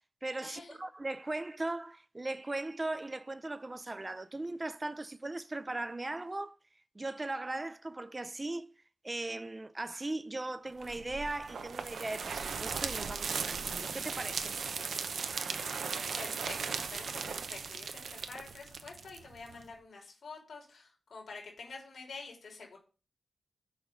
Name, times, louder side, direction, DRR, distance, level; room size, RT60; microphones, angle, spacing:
voice 1, 0.2-6.6 6.9-8.7 9.0-14.6, right 2 dB, 25° right, 0.5 m, -38 dB
sound 1, 10.8-19.6, right 5 dB, 85° right, 0.8 m, -37 dB
voice 2, 16.1-22.8, left 4 dB, 75° left, 3.0 m, -48 dB
6.4 x 4.8 x 6.5 m
wide cardioid pair, 105°, 0 cm